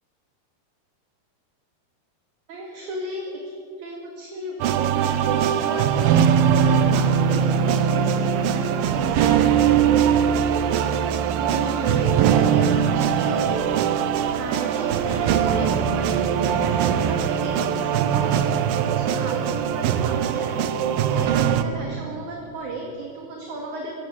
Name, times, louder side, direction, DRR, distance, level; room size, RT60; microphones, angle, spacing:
voice 1, 2.5-10.1 10.6-11.0 11.4-14.0 14.3-20.7 21.1-23.9, right 3 dB, 55° right, 0 dB, 3.2 m, -33 dB
sound 1, 4.6-21.6, right 8 dB, 75° right, 2.5 m, -21 dB
21.5 x 16.0 x 8.4 m, 2.6 s
omnidirectional pair, 4.4 m